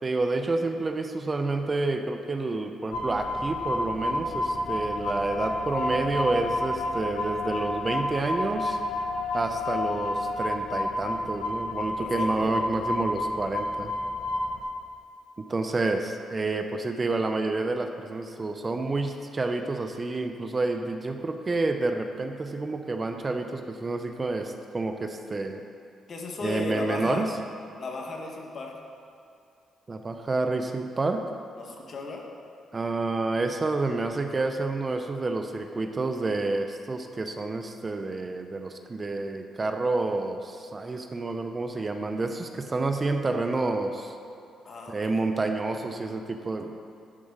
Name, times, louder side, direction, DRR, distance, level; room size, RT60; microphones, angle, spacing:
voice 1, 0.0-8.8 9.3-13.9 15.4-25.6 26.4-27.3 29.9-31.2 32.7-44.1 44.9-46.7, right 3 dB, 30° right, 6 dB, 0.6 m, -29 dB
sound 1, 2.9-14.6, left 2 dB, 70° left, 1.6 m, -30 dB
voice 2, 12.0-12.5 26.1-27.2 27.8-28.7 31.6-32.2 44.6-45.2, left 3 dB, 50° left, 0 dB, 1.5 m, -35 dB
11.0 x 4.9 x 6.5 m, 2.5 s
cardioid pair, 90°, 0 cm